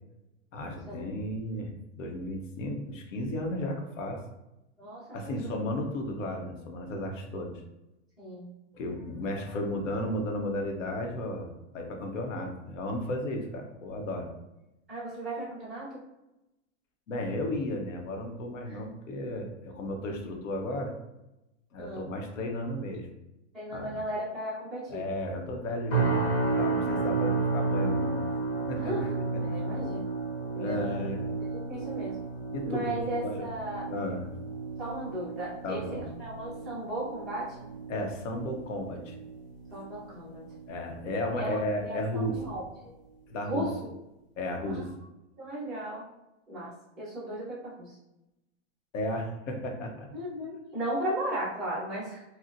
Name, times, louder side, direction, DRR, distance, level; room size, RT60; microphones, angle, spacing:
voice 1, 0.5-1.7 2.0-4.2 5.1-7.6 8.7-14.3 17.1-20.9 21.7-23.1 23.7-24.0 24.9-28.2 28.7-28.9 30.6-31.2 32.5-33.5 33.9-34.3 35.6-36.1 37.9-39.2 40.7-42.5 43.3-43.7 44.4-44.9 48.9-50.1, left 1 dB, 80° left, 2 dB, 0.9 m, -34 dB
voice 2, 4.8-5.6 8.2-8.5 9.2-9.6 14.9-16.0 18.7-18.8 21.8-22.1 23.5-25.1 28.8-29.1 29.4-30.1 30.5-31.0 31.5-32.2 32.6-33.9 34.8-37.7 39.7-40.5 41.4-42.9 43.5-43.9 44.6-44.8 45.4-46.1 46.5-48.0 50.1-52.2, right 1 dB, ahead, -14 dB, 0.8 m, -36 dB
sound 1, 25.9-41.1 41.5-41.9 42.3-42.5, right 3 dB, 50° left, 1.0 m, -32 dB
4.1 x 2.1 x 2.5 m, 0.93 s
supercardioid pair, 175°, 37 cm